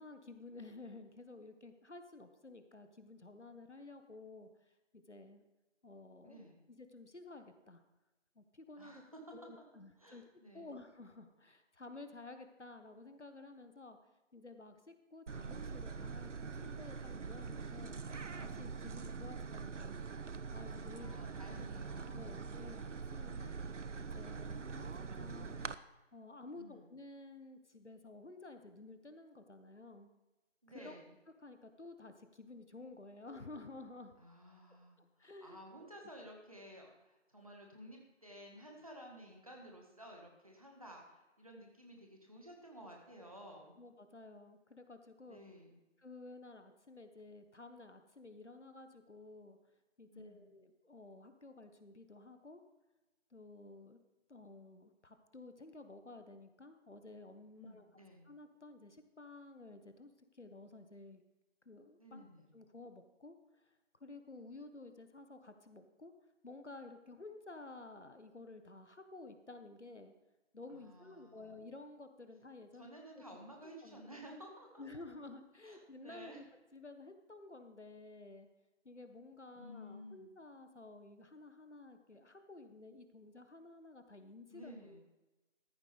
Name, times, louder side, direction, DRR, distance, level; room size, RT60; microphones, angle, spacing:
voice 1, 0.0-5.4 5.8-7.8 8.3-9.0 9.3-10.2 10.5-14.0 14.3-18.0 18.3-20.0 20.5-21.7 22.1-23.6 24.0-25.7 26.1-30.1 30.7-31.0 31.4-34.1 35.0-35.6 43.8-45.4 46.0-49.6 50.0-52.6 53.3-54.0 54.3-57.8 58.2-61.2 61.6-62.3 62.5-63.7 64.0-66.1 66.4-70.1 70.5-72.9 73.2-73.3 73.6-74.0 74.8-76.5 76.7-78.5 78.8-85.0, left 2 dB, 65° left, 8 dB, 1.4 m, -53 dB
voice 2, 6.2-6.6 8.8-10.7 20.9-22.4 26.5-26.9 30.6-31.1 34.2-43.8 45.3-45.8 50.1-50.5 57.6-58.3 62.0-62.5 70.7-71.6 72.8-75.0 75.6-76.4 79.5-80.3 84.5-85.0, equal, 30° right, 0 dB, 1.6 m, -54 dB
sound 1, 15.3-25.7, right 5 dB, 75° right, 0.7 m, -44 dB
14.0 x 10.0 x 3.4 m, 1.1 s
figure-of-eight pair, 170°, 37 cm